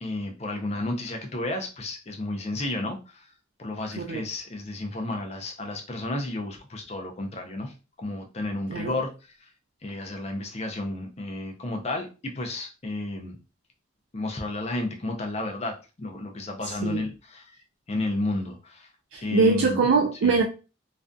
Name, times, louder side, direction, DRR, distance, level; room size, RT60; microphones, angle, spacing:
voice 1, 0.0-3.3 3.6-9.1 9.4-9.5 9.8-13.4 14.1-17.6 17.9-18.9 19.2-19.8 20.2-20.4, left 2 dB, 35° left, 0.5 m, -32 dB
voice 2, 19.1-20.4, right 4 dB, 85° right, 0.4 m, -22 dB
2.4 x 2.2 x 2.5 m
head